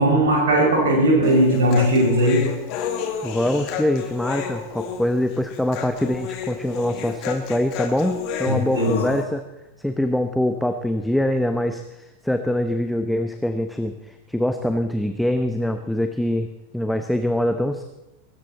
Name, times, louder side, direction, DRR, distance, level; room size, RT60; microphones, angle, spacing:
voice 1, 0.0-2.5 8.5-9.0, right 1 dB, 60° right, -2 dB, 6.0 m, -18 dB
Human voice, 1.2-9.2, left 7 dB, 40° left, 2.2 m, -31 dB
voice 2, 3.2-9.4 9.8-13.9 14.3-16.5 16.7-17.8, left 1 dB, ahead, 7 dB, 0.9 m, -24 dB
23.0 x 13.0 x 4.2 m, 0.95 s
figure-of-eight pair, 90°, 0 cm